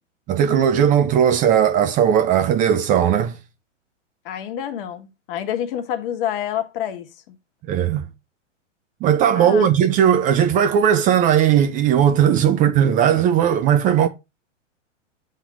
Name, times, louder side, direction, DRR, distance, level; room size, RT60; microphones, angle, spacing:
voice 1, 0.3-3.4 7.7-8.0 9.0-14.1, right 9 dB, 20° right, 0.5 m, -17 dB
voice 2, 4.2-7.4 9.3-9.7, left 10 dB, 45° left, 1.4 m, -28 dB
7.2 x 3.7 x 6.0 m
hypercardioid pair, 130°, 38 cm